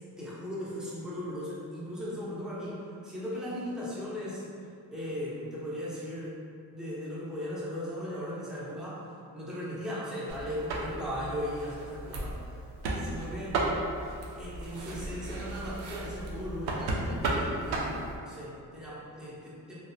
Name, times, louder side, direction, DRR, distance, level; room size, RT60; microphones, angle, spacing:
voice 1, 0.2-4.4 4.9-6.4 6.7-9.1 9.3-12.5 13.0-13.6 14.4-19.8, equal, ahead, -8 dB, 0.6 m, -37 dB
sound 1, 10.3-18.2, right 2 dB, 80° right, 0.5 m, -34 dB
3.0 x 2.0 x 2.5 m, 2.4 s
cardioid pair, 115°, 38 cm